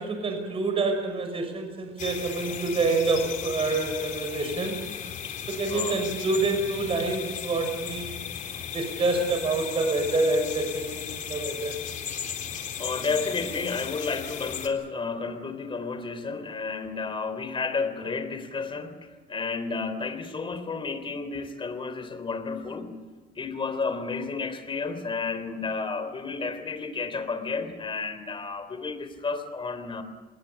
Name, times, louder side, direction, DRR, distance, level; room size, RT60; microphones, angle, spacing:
voice 1, 0.0-4.8 5.5-8.1 8.7-11.8, right 3 dB, 35° right, 5 dB, 6.0 m, -27 dB
sound 1, 2.0-14.7, left 8 dB, 50° left, 3.5 m, -36 dB
voice 2, 5.7-6.0 8.5-8.6 12.5-23.0 23.4-30.0, left 4 dB, 30° left, 10 dB, 3.7 m, -32 dB
27.0 x 21.0 x 7.2 m, 1.4 s
cardioid pair, 110°, 17 cm